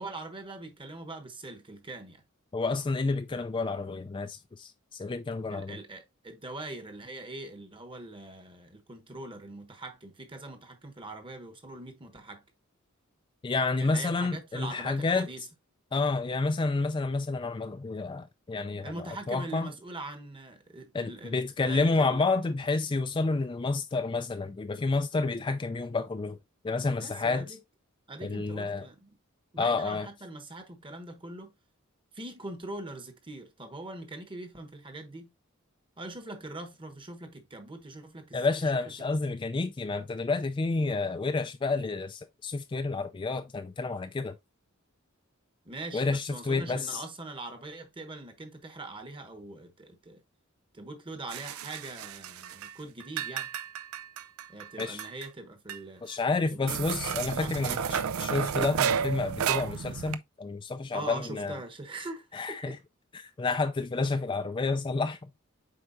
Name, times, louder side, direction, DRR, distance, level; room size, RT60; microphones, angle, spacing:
voice 1, 0.0-2.2 5.5-12.4 13.8-15.5 18.8-22.3 27.0-27.6 28.1-29.2 29.5-31.5 32.1-35.3 36.0-38.5 45.6-50.2 50.7-53.5 54.5-56.1 56.5-56.8 57.3-58.1 60.9-62.8, right 2 dB, 25° right, 1.1 m, -42 dB
voice 2, 2.5-5.8 13.4-15.3 15.9-19.7 20.9-26.4 26.6-27.5 28.2-28.9 29.6-30.1 38.3-44.4 45.9-47.0 54.8-55.0 56.0-61.6 62.3-62.8 63.1-65.3, left 3 dB, 25° left, 0.3 m, -30 dB
sound 1, 51.3-52.7 53.0-55.3 55.7-55.8 56.1-56.2 56.7-60.2, right 7 dB, 90° right, 0.5 m, -32 dB
7.7 x 4.7 x 2.6 m
head